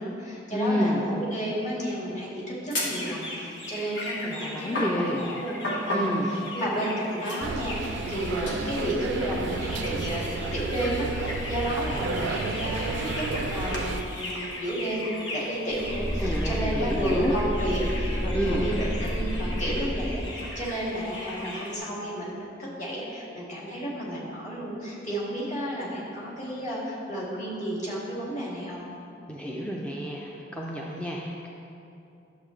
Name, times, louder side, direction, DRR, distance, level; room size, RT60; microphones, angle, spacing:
voice 1, 0.0-28.8, equal, 40° left, -6 dB, 2.2 m, -32 dB
voice 2, 0.5-1.0 4.2-5.3 5.9-6.3 16.2-17.3 18.3-18.7 29.3-31.5, equal, 5° left, -3 dB, 0.5 m, -29 dB
sound 1, 2.7-21.8, left 1 dB, 70° left, 1.5 m, -36 dB
sound 2, 7.4-14.0, right 4 dB, 70° right, 0.4 m, -32 dB
sound 3, 15.7-20.6, equal, 25° left, 2.1 m, -30 dB
11.0 x 7.3 x 3.2 m, 2.7 s
head